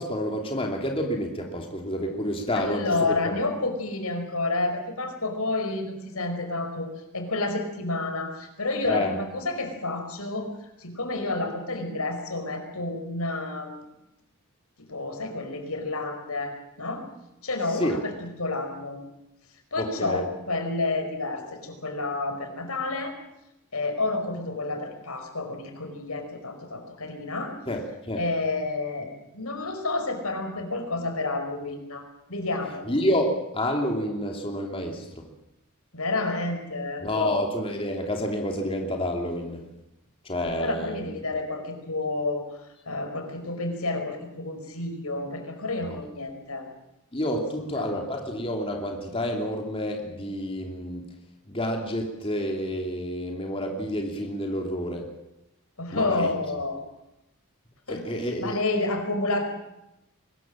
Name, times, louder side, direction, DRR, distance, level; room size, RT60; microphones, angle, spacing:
voice 1, 0.0-3.3 8.9-9.1 17.7-18.0 19.8-20.3 27.7-28.2 32.9-35.3 37.0-39.6 40.2-41.0 45.9-46.0 47.1-51.1 51.5-55.1 55.9-56.3 57.9-58.6, equal, 25° left, 2 dB, 2.9 m, -29 dB
voice 2, 2.5-6.9 7.1-10.5 10.8-13.7 14.8-17.0 17.4-19.0 19.7-23.1 23.7-27.6 28.2-32.0 32.3-32.9 35.9-37.4 40.5-42.5 42.8-46.7 47.7-48.0 55.8-56.8 57.9-58.0 58.4-59.4, left 2 dB, 80° left, 6 dB, 4.9 m, -30 dB
23.5 x 20.0 x 7.5 m, 0.89 s
head